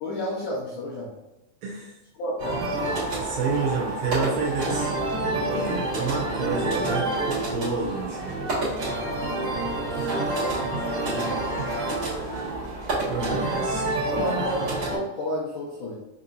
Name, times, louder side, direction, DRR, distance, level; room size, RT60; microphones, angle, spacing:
voice 1, 0.0-1.1 2.2-2.6 10.1-10.7 11.0-11.4 14.1-16.0, equal, 80° left, -6 dB, 1.8 m, -31 dB
voice 2, 1.6-2.0 3.2-4.9 5.2-7.1 7.5-8.5 13.1-13.8, right 4 dB, 80° right, -2 dB, 2.3 m, -29 dB
sound 1, 2.4-15.0, right 2 dB, 55° right, 1.3 m, -28 dB
5.9 x 2.8 x 2.5 m, 0.96 s
omnidirectional pair, 4.6 m